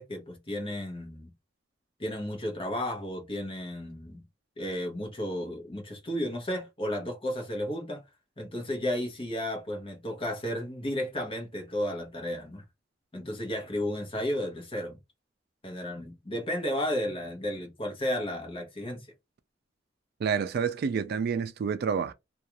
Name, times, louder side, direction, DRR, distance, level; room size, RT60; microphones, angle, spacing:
voice 1, 0.0-1.3 2.0-4.2 4.6-8.0 8.4-12.6 13.1-15.0 15.6-19.1, left 1 dB, 30° left, 0.9 m, -33 dB
voice 2, 20.2-22.1, right 6 dB, 55° right, 0.3 m, -28 dB
2.4 x 2.3 x 2.9 m
head